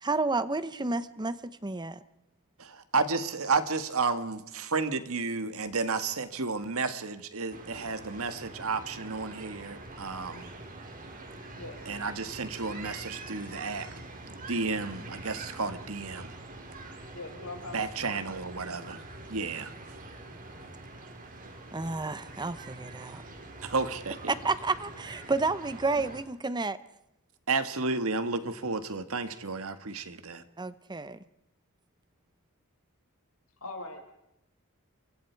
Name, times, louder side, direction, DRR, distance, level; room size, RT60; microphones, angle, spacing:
voice 1, 0.0-2.0 21.7-23.2 24.3-26.8 30.6-31.2, right 3 dB, 20° right, 14 dB, 0.8 m, -31 dB
voice 2, 2.6-10.5 11.9-13.9 14.5-16.3 17.7-19.0 19.3-19.7 23.6-24.3 27.5-30.4, right 4 dB, 70° right, 10 dB, 1.7 m, -32 dB
sound 1, 7.5-26.2, right 2 dB, 40° right, 4.0 m, -45 dB
voice 3, 11.5-11.9 17.1-18.3 33.6-34.0, left 2 dB, 75° left, 3 dB, 6.0 m, -42 dB
28.0 x 24.0 x 4.6 m, 0.84 s
head